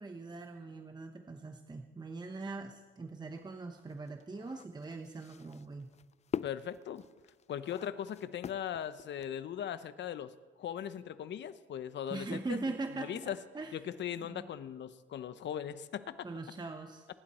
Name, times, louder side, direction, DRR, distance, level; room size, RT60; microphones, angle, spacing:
voice 1, 0.0-5.9 12.1-13.8 14.2-14.5 16.2-17.1, right 3 dB, 20° right, 5 dB, 1.0 m, -41 dB
sound 1, 3.3-9.5, left 8 dB, 35° left, 0.4 m, -44 dB
voice 2, 6.4-7.0 7.5-10.3 10.6-12.6 13.0-13.4 13.7-16.2, left 9 dB, 65° left, 13 dB, 0.9 m, -39 dB
25.5 x 11.5 x 4.3 m, 1.4 s
cardioid pair, 90°, 20 cm